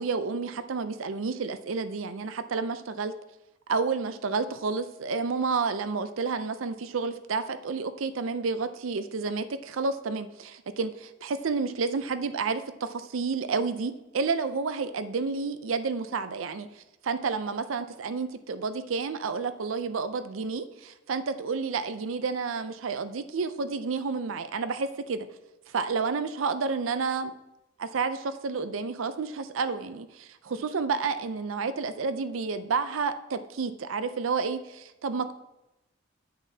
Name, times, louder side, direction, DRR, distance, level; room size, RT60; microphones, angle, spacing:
voice 1, 0.0-3.1 3.7-16.7 17.0-25.3 25.7-27.3 27.8-35.3, right 4 dB, 85° right, 11 dB, 0.5 m, -30 dB
9.3 x 6.7 x 2.8 m, 0.94 s
head